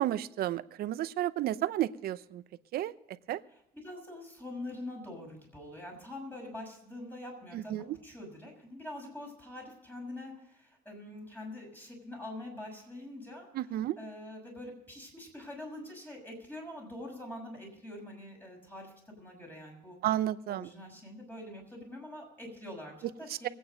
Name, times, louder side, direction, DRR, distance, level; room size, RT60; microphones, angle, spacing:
voice 1, 0.0-2.4 2.7-2.9 3.3-3.4 7.5-8.0 13.5-14.0 20.0-20.7, right 13 dB, 65° right, 15 dB, 0.7 m, -32 dB
voice 2, 3.5-20.0 20.5-23.5, left 1 dB, 10° left, 1 dB, 6.4 m, -45 dB
21.5 x 9.2 x 5.2 m, 0.84 s
cardioid pair, 110°, 17 cm